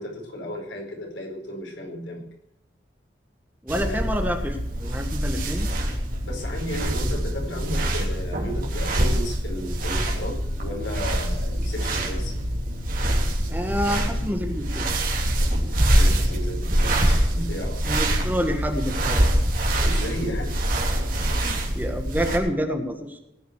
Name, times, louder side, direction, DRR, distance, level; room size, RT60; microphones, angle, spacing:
voice 1, 0.0-2.3 3.8-4.1 6.3-12.3 15.9-18.0 19.8-20.6 21.4-21.6, equal, 80° left, -1 dB, 5.0 m, -34 dB
voice 2, 3.6-5.7 13.5-14.8 17.9-19.3 21.7-23.2, equal, 10° right, 5 dB, 1.4 m, -28 dB
sound 1, 3.7-22.4, right 1 dB, 45° right, 3.1 m, -24 dB
18.5 x 6.6 x 8.1 m, 0.86 s
head